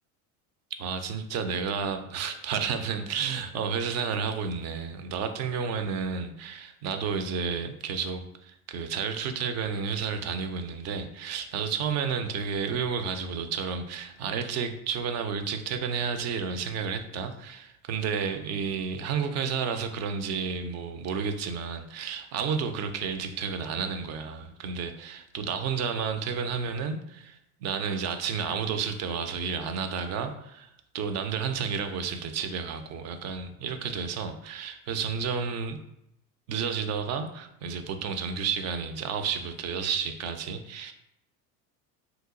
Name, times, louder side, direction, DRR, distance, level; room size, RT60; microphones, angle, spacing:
voice 1, 0.8-35.8 36.5-40.9, right 6 dB, 35° right, 8 dB, 0.4 m, -31 dB
2.9 x 2.2 x 3.6 m, 0.82 s
hypercardioid pair, 85°, 46 cm